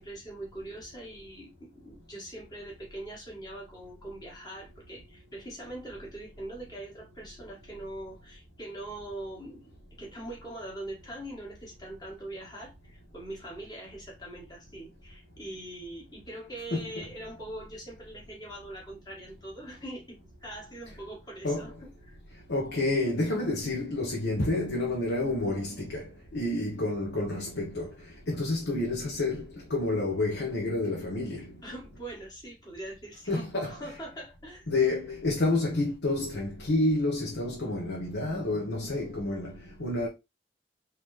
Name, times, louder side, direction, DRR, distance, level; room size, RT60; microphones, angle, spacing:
voice 1, 0.0-9.6 10.0-22.2 27.2-27.3 31.6-34.7, right 1 dB, 20° left, 1.5 m, -42 dB
voice 2, 16.7-17.0 21.4-21.7 22.5-27.9 28.3-31.5 33.3-33.7 34.7-40.1, left 2 dB, 80° left, 1.0 m, -29 dB
3.7 x 2.8 x 3.1 m
head